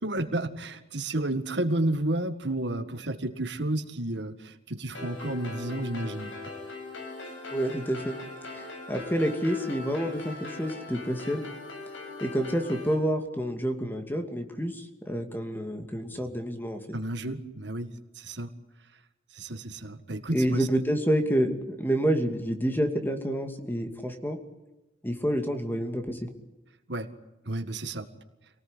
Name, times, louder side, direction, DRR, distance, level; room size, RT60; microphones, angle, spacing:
voice 1, 0.0-6.3 16.9-18.5 19.3-20.7 26.9-27.1 27.5-28.1, right 1 dB, 65° right, 9 dB, 1.9 m, -31 dB
sound 1, 4.9-12.9, left 3 dB, 85° left, 7.8 m, -40 dB
voice 2, 7.5-8.1 8.5-11.4 12.2-16.8 20.3-24.4 25.0-26.3, equal, 10° left, 6 dB, 2.5 m, -28 dB
27.5 x 18.5 x 9.9 m, 1.0 s
head